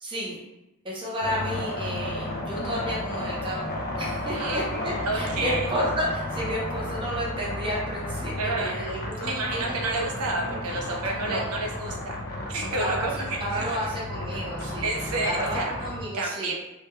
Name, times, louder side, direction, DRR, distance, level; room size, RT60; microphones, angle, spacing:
voice 1, 0.0-0.4 0.8-9.9 10.4-11.4 12.6-14.9 15.2-16.5, equal, 20° right, -5 dB, 0.6 m, -32 dB
sound 1, 1.2-16.0, left 1 dB, 40° left, 0.4 m, -33 dB
voice 2, 4.3-5.7 8.4-8.9 9.2-12.2 12.5-13.8 14.6-15.7 16.1-16.5, right 2 dB, 85° right, 0 dB, 0.5 m, -30 dB
2.2 x 2.2 x 2.9 m, 0.92 s
head